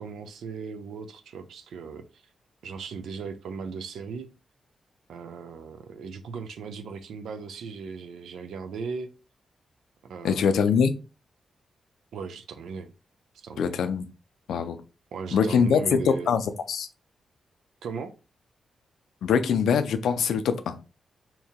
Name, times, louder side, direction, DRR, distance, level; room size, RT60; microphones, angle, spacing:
voice 1, 0.0-2.1 2.6-4.3 5.1-9.1 10.0-10.6 12.1-12.9 13.3-13.8 15.1-16.4 17.8-18.1, right 5 dB, 85° right, 0.4 m, -37 dB
voice 2, 10.2-10.9 13.6-14.1 14.5-14.8 15.3-16.0 16.3-16.4 16.7-16.9 19.2-20.9, left 6 dB, 85° left, 0.4 m, -23 dB
2.9 x 2.7 x 3.5 m
cardioid pair, 70°, 0 cm